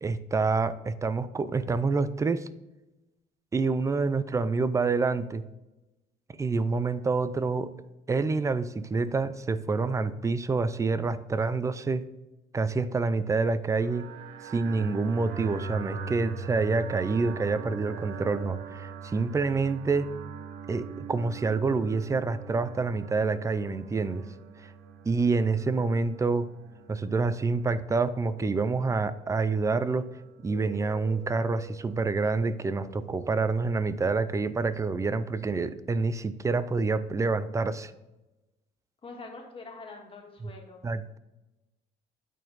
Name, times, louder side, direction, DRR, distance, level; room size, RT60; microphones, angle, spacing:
voice 1, 0.0-2.5 3.5-5.4 6.4-7.7 8.1-12.0 12.5-14.1 14.4-20.1 20.7-24.2 24.6-24.7 25.0-26.5 26.9-30.1 30.4-37.9 40.4-40.5 40.8-41.2, right 4 dB, 20° right, 14 dB, 0.4 m, -27 dB
sound 1, 13.8-33.5, right 6 dB, 70° right, 0.8 m, -42 dB
voice 2, 39.0-40.9, left 3 dB, 30° left, 1 dB, 1.7 m, -44 dB
9.0 x 4.3 x 3.9 m, 1.0 s
cardioid pair, 110°, 17 cm